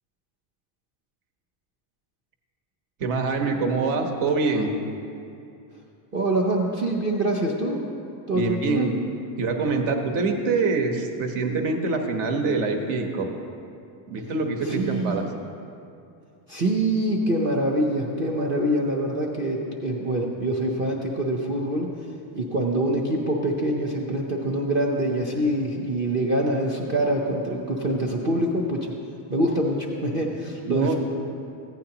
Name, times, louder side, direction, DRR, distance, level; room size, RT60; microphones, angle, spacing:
voice 1, 3.0-4.7 8.3-8.9 9.4-13.3 14.1-15.2 30.7-30.9, right 3 dB, 60° right, 3 dB, 1.2 m, -25 dB
voice 2, 6.1-7.8 8.3-8.9 14.6-15.3 16.5-21.9 22.3-28.9 29.3-30.9, right 1 dB, 25° right, -2 dB, 0.6 m, -25 dB
15.0 x 9.1 x 2.9 m, 2.6 s
cardioid pair, 170°, 47 cm